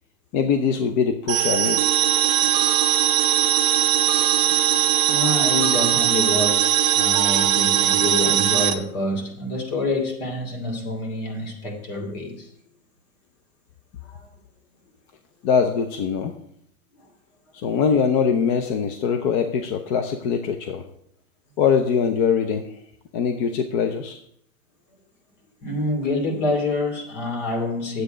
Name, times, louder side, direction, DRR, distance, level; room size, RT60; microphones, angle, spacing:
voice 1, 0.3-1.9 15.4-16.3 17.5-20.8 21.6-22.7 23.1-24.2, left 6 dB, 35° left, 7 dB, 0.6 m, -22 dB
sound 1, 1.3-8.7, right 11 dB, 25° right, 0.4 m, -20 dB
voice 2, 3.9-4.8 5.1-12.5 14.0-14.2 16.9-17.1 25.6-28.0, left 2 dB, 55° left, 3 dB, 2.8 m, -27 dB
8.3 x 7.9 x 5.0 m, 0.71 s
supercardioid pair, 145°, 43 cm